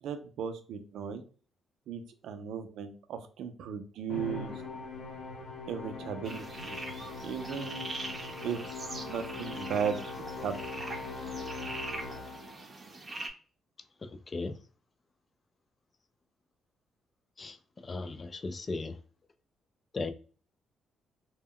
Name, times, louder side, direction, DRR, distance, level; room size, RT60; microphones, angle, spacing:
voice 1, 0.0-1.2 1.9-4.5 5.7-6.8 7.2-7.9 8.4-8.6 9.0-10.0 10.4-10.8, right 7 dB, 80° right, 0.4 m, -36 dB
Musical instrument, 4.1-12.7, left 3 dB, 85° left, 0.9 m, -41 dB
sound 1, 6.2-13.3, right 2 dB, 30° right, 0.6 m, -42 dB
voice 2, 14.0-14.6 17.4-17.6 17.8-19.0 19.9-20.1, left 3 dB, 30° left, 0.3 m, -36 dB
2.1 x 2.1 x 3.6 m
cardioid pair, 90°, 0 cm